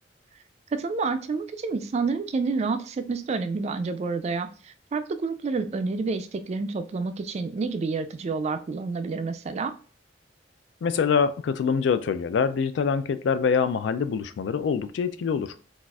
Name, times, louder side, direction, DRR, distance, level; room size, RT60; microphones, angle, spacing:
voice 1, 0.7-9.7, right 4 dB, 35° right, 9 dB, 0.3 m, -29 dB
voice 2, 10.8-15.5, left 6 dB, 75° left, 13 dB, 0.3 m, -25 dB
4.0 x 2.4 x 2.3 m, 0.38 s
head